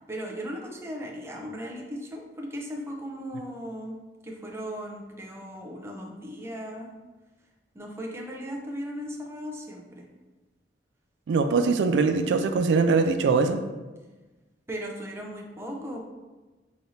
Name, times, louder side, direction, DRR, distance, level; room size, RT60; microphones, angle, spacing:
voice 1, 0.1-4.0 4.2-6.9 7.7-10.1 14.7-16.0, equal, 15° right, 0 dB, 0.5 m, -37 dB
voice 2, 11.3-13.6, right 4 dB, 80° right, 7 dB, 0.3 m, -22 dB
5.1 x 3.0 x 2.7 m, 1.2 s
head